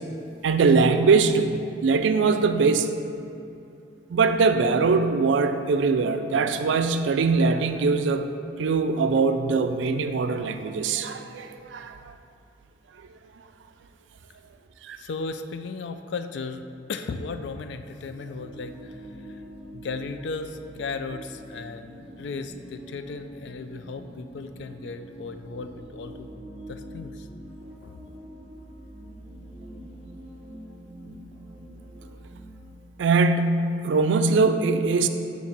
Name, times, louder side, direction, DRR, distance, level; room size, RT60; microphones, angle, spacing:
voice 1, 0.4-2.9 4.1-8.3 8.6-12.1 14.8-15.0 33.0-35.1, right 4 dB, 90° right, 9 dB, 0.4 m, -22 dB
voice 2, 15.0-16.6 16.9-19.4 19.7-26.3 26.7-27.3 27.8-28.0, left 4 dB, 75° left, 9 dB, 0.4 m, -36 dB
sound 1, 17.9-32.7, equal, 35° right, 1.0 m, -44 dB
7.0 x 2.9 x 5.9 m, 2.8 s
head